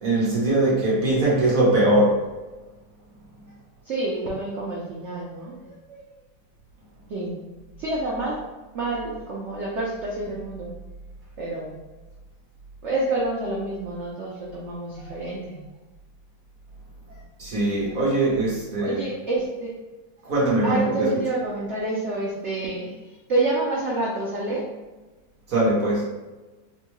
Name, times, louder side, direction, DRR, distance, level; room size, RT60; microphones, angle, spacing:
voice 1, 0.0-2.2 17.4-19.0 20.3-21.1 25.5-26.1, right 1 dB, 55° right, -6 dB, 1.1 m, -21 dB
voice 2, 3.8-6.0 7.1-7.5 7.8-8.4 8.7-10.7 11.4-11.7 12.8-15.6 17.1-17.2 17.8-18.0 18.8-19.7 20.2-20.3 20.6-24.7, right 2 dB, 90° right, -4 dB, 0.6 m, -28 dB
4.4 x 2.2 x 3.0 m, 1.2 s
omnidirectional pair, 2.0 m